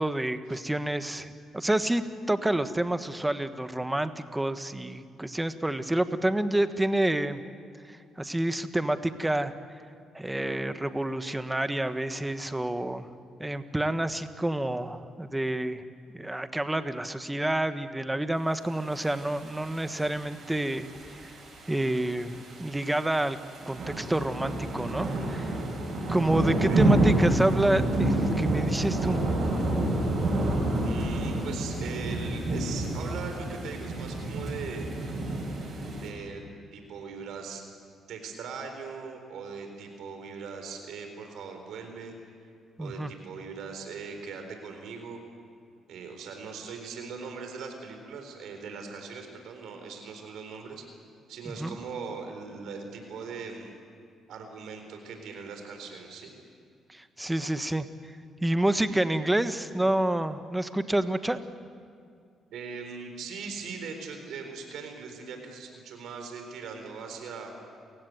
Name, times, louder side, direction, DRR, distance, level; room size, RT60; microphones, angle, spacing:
voice 1, 0.0-7.4 7.9-9.5 10.1-13.1 13.4-15.8 16.1-20.9 21.7-23.4 23.7-25.5 26.1-29.3 42.8-43.1 51.5-51.8 56.9-57.9 58.4-61.4, right 1 dB, 10° right, 10 dB, 1.3 m, -28 dB
sound 1, 18.9-36.1, right 2 dB, 50° right, 7.8 m, -29 dB
voice 2, 26.4-26.9 30.8-34.9 36.0-36.4 36.7-37.6 38.1-42.3 42.8-45.2 45.9-50.8 51.3-53.7 54.3-56.3 62.5-67.5, right 5 dB, 80° right, 5 dB, 4.0 m, -40 dB
28.5 x 16.0 x 9.5 m, 2.4 s
cardioid pair, 90°, 0 cm